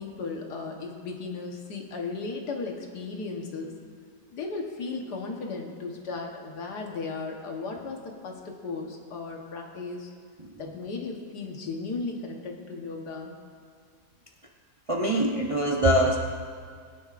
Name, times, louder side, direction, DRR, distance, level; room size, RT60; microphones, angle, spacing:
voice 1, 0.0-3.7 4.3-10.1 10.6-13.4, left 4 dB, 90° left, 1 dB, 1.8 m, -35 dB
voice 2, 14.9-16.2, right 1 dB, 30° right, -1 dB, 0.7 m, -23 dB
20.5 x 10.5 x 2.5 m, 2.1 s
omnidirectional pair, 1.7 m